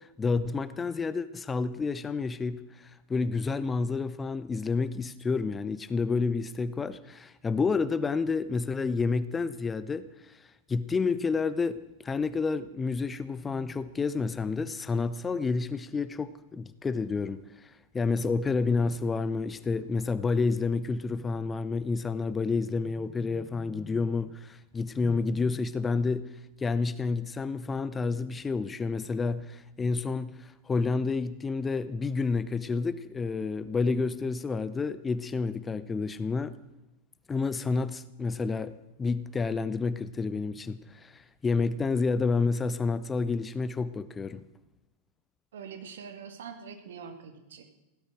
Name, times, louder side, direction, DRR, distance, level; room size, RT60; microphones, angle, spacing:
voice 1, 0.0-26.3 26.6-36.5 37.3-38.7 39.0-44.4, left 4 dB, 15° left, 15 dB, 0.6 m, -29 dB
voice 2, 45.5-47.6, right 6 dB, 60° right, 7 dB, 2.1 m, -44 dB
16.5 x 12.0 x 6.4 m, 0.96 s
figure-of-eight pair, 90°, 0 cm